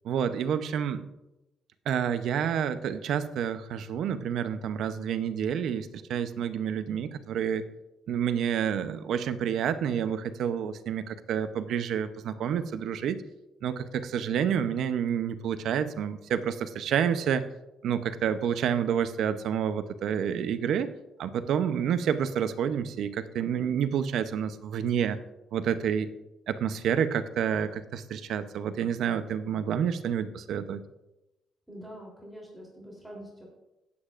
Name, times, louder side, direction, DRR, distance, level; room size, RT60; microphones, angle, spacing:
voice 1, 0.0-1.0 1.9-7.6 8.1-13.2 13.6-17.4 17.8-20.9 21.2-25.2 25.5-26.1 26.5-30.8, right 8 dB, 75° right, 11 dB, 0.7 m, -29 dB
voice 2, 31.7-33.4, equal, 5° right, -3 dB, 3.4 m, -45 dB
18.0 x 8.6 x 2.5 m, 0.96 s
cardioid pair, 90°, 0 cm